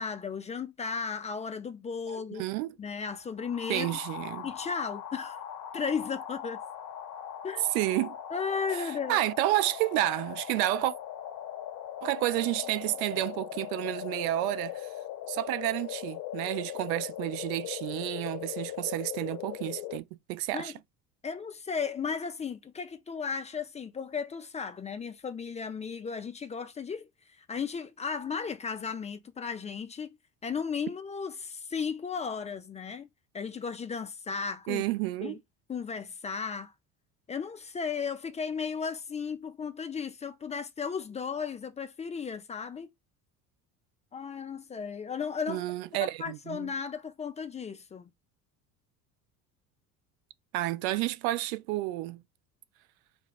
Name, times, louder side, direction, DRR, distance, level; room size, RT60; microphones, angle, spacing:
voice 1, 0.0-2.5 2.8-3.9 4.4-5.4 5.7-6.6 7.4-7.7 8.3-9.2 20.5-20.7 21.2-30.2 30.4-33.1 33.3-34.8 35.2-35.4 35.7-36.7 37.3-42.9 44.1-45.6 46.0-48.1, left 6 dB, 15° left, 0.4 m, -35 dB
voice 2, 2.3-2.7 3.7-4.5 7.7-8.2 8.7-8.8 9.1-10.9 12.0-14.9 15.3-20.7 34.7-35.4 45.5-46.7 50.5-52.2, right 16 dB, 65° right, 0.5 m, -30 dB
sound 1, 3.4-20.0, left 10 dB, 45° left, 0.8 m, -40 dB
4.3 x 2.3 x 3.3 m
hypercardioid pair, 65°, 47 cm